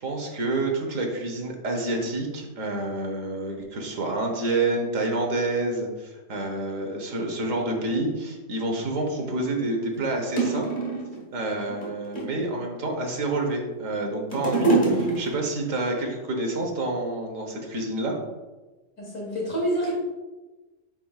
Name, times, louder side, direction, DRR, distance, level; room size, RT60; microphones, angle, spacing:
voice 1, 0.0-10.7 11.3-18.1, right 2 dB, 80° right, 2 dB, 1.5 m, -28 dB
sound 1, 9.2-9.3 9.9-10.0 10.4-11.2 11.7-12.5 13.1-13.7 14.0-15.6 16.4-16.5, right 3 dB, 40° left, 1.5 m, -25 dB
voice 2, 19.0-19.9, right 1 dB, 85° left, -4 dB, 2.7 m, -27 dB
9.0 x 5.1 x 2.4 m, 1.2 s
omnidirectional pair, 1.3 m